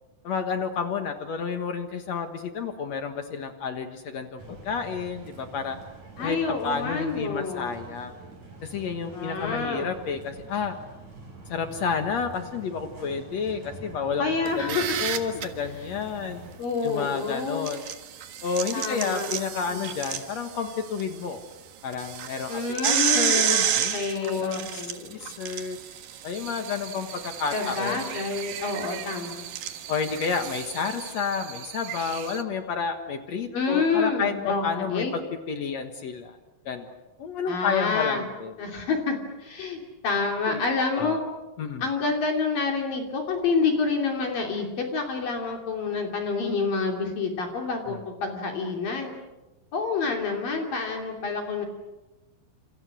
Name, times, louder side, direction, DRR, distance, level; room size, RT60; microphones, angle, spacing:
voice 1, 0.2-5.8 6.2-6.4 6.6-8.1 8.6-10.8 11.5-14.2 14.5-16.4 16.8-17.8 18.4-21.4 21.8-24.8 25.1-25.8 26.2-28.0 29.9-35.2 35.5-36.3 36.6-36.9 37.2-38.5 40.5-40.6 41.0-41.2 41.6-41.8 47.9-48.0, left 6 dB, 75° left, 7 dB, 1.5 m, -30 dB
sound 1, 4.4-16.6, right 3 dB, 40° right, 8.2 m, -45 dB
voice 2, 6.2-7.7 9.1-9.9 14.2-15.0 16.6-17.7 18.7-19.3 19.6-20.0 22.5-25.1 27.5-29.5 33.5-35.1 37.5-38.3 38.6-41.2 41.8-49.1 49.7-51.7, left 4 dB, 50° left, 2 dB, 4.3 m, -28 dB
sound 2, 14.5-15.5 17.4-21.0 21.4-21.5 21.9-31.1, right 9 dB, 60° right, 2.6 m, -30 dB
sound 3, 26.3-32.4, right 12 dB, 80° right, 1.9 m, -40 dB
29.0 x 28.0 x 6.3 m, 1.1 s
omnidirectional pair, 5.5 m